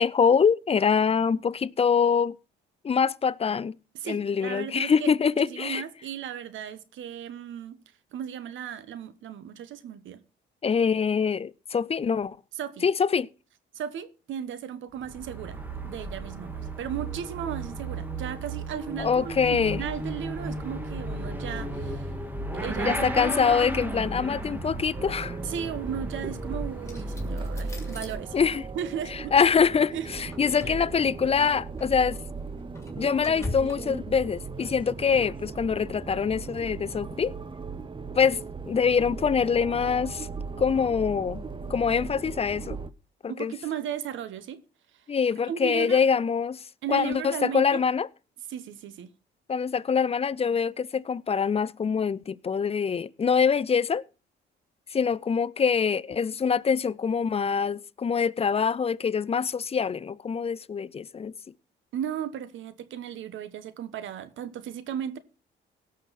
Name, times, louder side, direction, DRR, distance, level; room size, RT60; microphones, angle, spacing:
voice 1, 0.0-2.4 2.8-3.7 4.0-5.8 10.6-12.4 12.8-13.3 19.0-19.8 22.8-25.4 28.3-28.6 29.3-32.2 33.0-37.3 38.2-40.3 40.6-41.4 41.7-42.8 43.2-43.5 45.1-48.1 49.5-54.0 54.9-61.3, left 6 dB, 30° left, 0.5 m, -24 dB
voice 2, 3.9-7.8 8.1-10.2 12.6-12.9 13.7-22.1 22.5-23.0 25.4-28.4 28.7-29.3 29.9-30.1 30.6-30.7 43.3-44.6 44.9-45.0 45.5-46.0 46.8-47.8 48.5-49.1 61.9-65.2, right 9 dB, 75° right, 1.2 m, -36 dB
Motorcycle / Accelerating revving vroom, 14.9-28.8, right 1 dB, 10° right, 2.0 m, -34 dB
sound 1, 24.9-42.9, right 4 dB, 25° right, 0.8 m, -38 dB
sound 2, 26.9-28.1 30.1-31.2 31.8-32.0 32.4-33.8, left 2 dB, 15° left, 3.0 m, -40 dB
17.5 x 6.4 x 4.1 m
cardioid pair, 90°, 20 cm